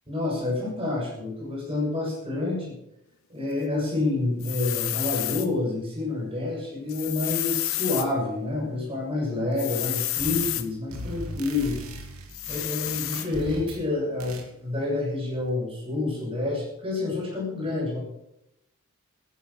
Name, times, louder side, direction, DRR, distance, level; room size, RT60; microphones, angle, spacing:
voice 1, 0.1-2.7 3.3-11.8 12.5-18.0, left 2 dB, 25° right, -3 dB, 7.4 m, -28 dB
sound 1, 4.4-5.5 6.9-8.1 9.6-10.7 12.3-13.3, left 16 dB, 65° left, 0.9 m, -30 dB
sound 2, 10.2-10.6 10.9-13.9 14.2-14.5, right 1 dB, 75° right, 2.7 m, -39 dB
14.5 x 11.5 x 6.9 m, 0.81 s
head